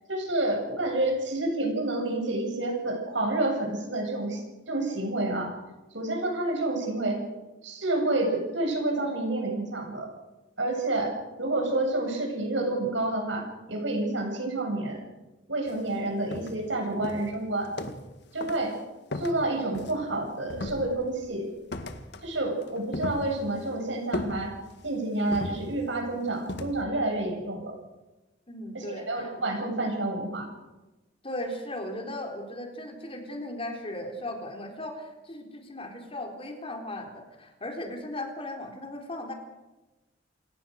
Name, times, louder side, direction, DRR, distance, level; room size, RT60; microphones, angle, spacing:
voice 1, 0.1-5.5 5.9-7.3 7.6-10.1 10.6-15.0 15.5-17.7 18.3-18.8 19.1-21.5 22.2-24.5 24.8-27.7 28.7-30.5, right 2 dB, 70° right, 2 dB, 7.8 m, -29 dB
sound 1, 15.7-15.8 16.3-16.7 17.0-18.2 18.4-18.7 19.1-20.2 20.5-21.2 21.7-22.3 22.6-23.7 24.1-24.9 25.3-26.0 26.5-26.8, left 1 dB, 60° left, 1.9 m, -36 dB
voice 2, 28.5-29.3 31.2-39.3, left 1 dB, 30° left, 3 dB, 3.9 m, -37 dB
29.0 x 17.5 x 6.5 m, 1.1 s
head